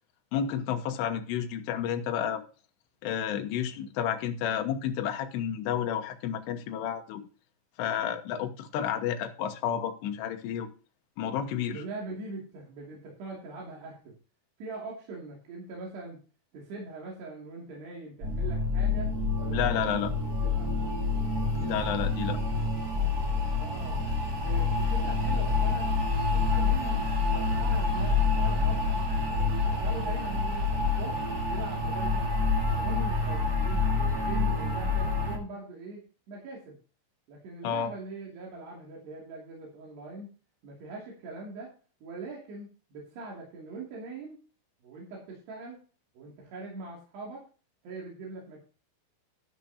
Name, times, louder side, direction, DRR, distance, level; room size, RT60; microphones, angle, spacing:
voice 1, 0.3-2.4 3.0-7.2 7.8-10.7 11.2-11.8 19.5-20.1 21.6-22.4 37.6-37.9, left 9 dB, 75° left, 5 dB, 3.2 m, -31 dB
voice 2, 11.7-14.1 14.6-16.2 16.5-19.1 19.4-20.7 23.4-24.1 24.4-25.9 26.3-27.0 27.3-29.0 29.3-31.2 31.5-32.3 32.6-36.0 36.3-36.8 37.3-40.3 40.6-41.7 42.0-44.4 44.8-45.8 46.1-47.4 47.8-48.6, right 3 dB, 65° right, -3 dB, 4.7 m, -42 dB
sound 1, 18.2-35.4, left 3 dB, 40° right, 1.3 m, -27 dB
12.0 x 10.5 x 2.8 m, 0.36 s
omnidirectional pair, 5.2 m